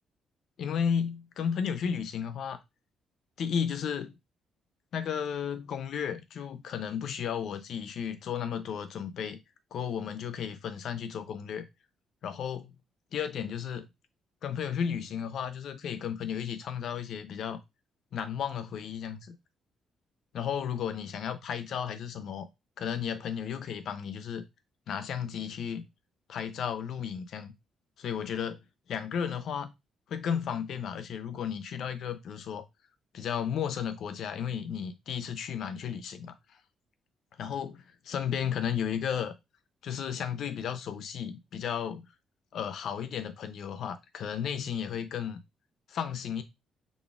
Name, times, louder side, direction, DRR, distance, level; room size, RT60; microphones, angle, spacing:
voice 1, 0.6-2.6 3.4-4.2 4.9-9.4 9.7-11.7 12.2-12.7 13.1-13.9 14.4-17.6 18.1-19.4 20.3-22.5 22.8-24.4 24.9-25.9 26.3-27.5 28.0-28.6 28.9-29.7 30.1-32.6 33.1-36.3 37.4-39.3 39.8-42.0 42.5-45.4 45.9-46.4, left 8 dB, 70° left, 0.5 m, -33 dB
4.1 x 3.4 x 2.3 m
cardioid pair, 90°, 0 cm